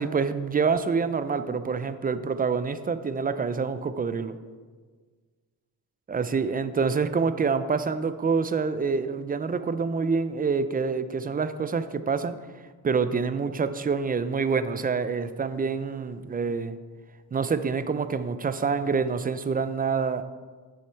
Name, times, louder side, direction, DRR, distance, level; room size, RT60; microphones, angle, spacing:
voice 1, 0.0-4.3 6.1-12.4 12.8-16.8 17.3-20.2, right 5 dB, 20° right, 12 dB, 0.4 m, -26 dB
7.1 x 5.3 x 4.5 m, 1.5 s
hypercardioid pair, 45°, 49 cm